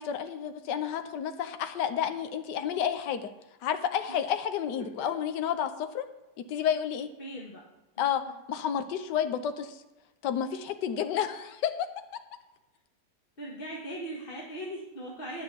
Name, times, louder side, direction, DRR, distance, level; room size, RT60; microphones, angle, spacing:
voice 1, 0.0-3.3 3.6-6.0 6.5-7.1 8.0-8.2 8.5-9.8 10.2-11.7, left 9 dB, 75° left, 8 dB, 1.4 m, -30 dB
voice 2, 4.7-5.1 7.2-7.7 13.4-15.4, right 1 dB, 30° left, -4 dB, 1.7 m, -39 dB
10.5 x 5.8 x 8.2 m, 1.0 s
omnidirectional pair, 1.9 m